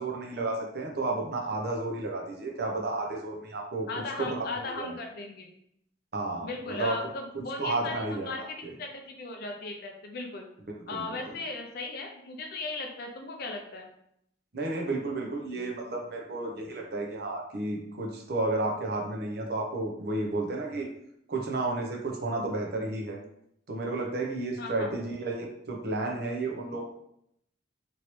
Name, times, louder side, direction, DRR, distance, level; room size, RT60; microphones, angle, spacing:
voice 1, 0.0-3.9 4.2-4.9 6.1-6.9 7.6-8.7 10.9-11.0 14.5-20.9 21.3-23.2 23.7-26.8, right 2 dB, 55° right, 0 dB, 0.7 m, -32 dB
voice 2, 3.9-5.5 6.4-10.5 10.9-13.9 24.6-24.9, left 3 dB, 55° left, 3 dB, 0.5 m, -37 dB
3.0 x 2.7 x 3.0 m, 0.74 s
head